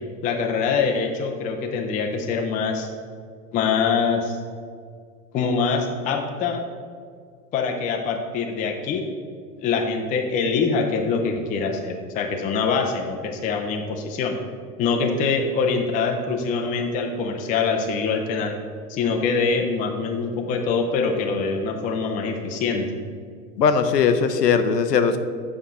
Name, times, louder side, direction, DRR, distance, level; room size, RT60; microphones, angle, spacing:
voice 1, 0.2-2.9 3.5-4.4 5.3-6.6 7.5-9.0 9.6-14.4 14.8-18.5 18.9-22.9, left 5 dB, 20° left, 2 dB, 0.4 m, -24 dB
voice 2, 23.6-25.2, left 6 dB, 85° left, 9 dB, 0.7 m, -19 dB
7.2 x 5.4 x 3.6 m, 2.1 s
figure-of-eight pair, 90°, 47 cm